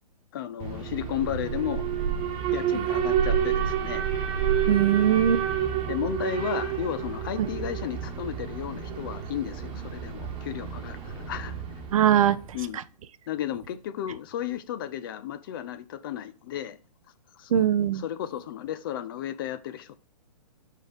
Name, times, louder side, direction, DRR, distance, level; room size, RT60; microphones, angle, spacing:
voice 1, 0.3-1.8 2.5-4.0 5.9-11.5 12.5-12.8 13.3-16.8 17.3-17.5 17.9-20.0, left 11 dB, 35° left, 0.4 m, -33 dB
Alarm, 0.6-12.6, right 8 dB, 25° right, 1.2 m, -29 dB
voice 2, 4.7-5.4 7.4-7.5 11.9-12.4 12.7-12.8 17.5-18.0, right 10 dB, 55° right, 0.5 m, -21 dB
4.6 x 4.5 x 4.9 m
hypercardioid pair, 135°, 21 cm